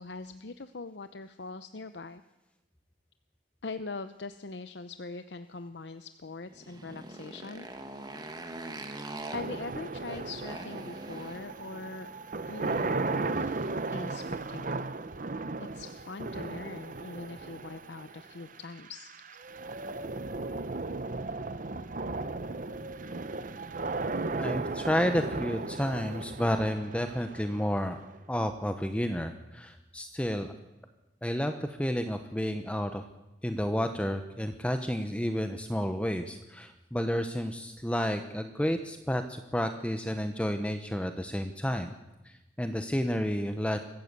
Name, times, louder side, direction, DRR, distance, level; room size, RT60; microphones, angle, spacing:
voice 1, 0.0-2.2 3.6-7.7 8.9-9.0 9.3-12.1 12.4-14.9 15.6-19.1, left 3 dB, 70° left, 10 dB, 0.8 m, -42 dB
Motorcycle, 6.5-13.1, right 2 dB, 25° right, 1.9 m, -44 dB
sound 1, 9.3-28.4, right 3 dB, 45° right, 0.9 m, -36 dB
voice 2, 24.4-28.0 28.3-30.5 31.2-33.0 33.4-41.9 42.2-43.8, equal, 5° left, 7 dB, 0.9 m, -31 dB
23.0 x 14.5 x 8.2 m, 1.0 s
head